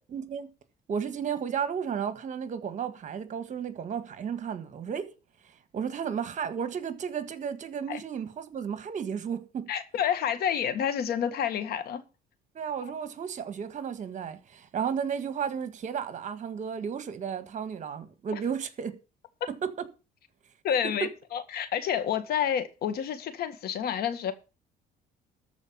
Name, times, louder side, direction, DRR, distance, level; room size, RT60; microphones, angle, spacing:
voice 1, 0.1-0.5 0.9-5.1 5.7-9.7 12.5-18.9 19.6-19.7 21.0-21.1, right 7 dB, 45° right, 1.7 m, -33 dB
voice 2, 9.7-12.0 12.8-12.9 20.6-24.3, left 9 dB, 65° left, 1.8 m, -29 dB
13.5 x 4.8 x 8.6 m
cardioid pair, 110°, 17 cm